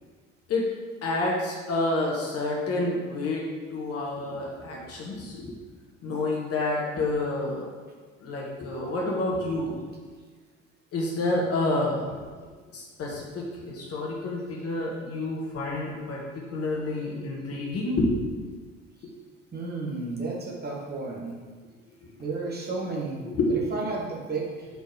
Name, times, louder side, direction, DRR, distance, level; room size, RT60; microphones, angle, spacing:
voice 1, 1.0-3.4 3.7-5.6 6.0-7.6 8.2-9.7 10.9-12.1 12.7-18.2 23.3-23.6, left 2 dB, 40° left, -2 dB, 1.5 m, -29 dB
voice 2, 19.5-21.4 22.2-23.2 23.5-24.7, right 3 dB, 25° right, -2 dB, 1.5 m, -32 dB
5.4 x 4.5 x 4.7 m, 1.5 s
figure-of-eight pair, 60°, 38 cm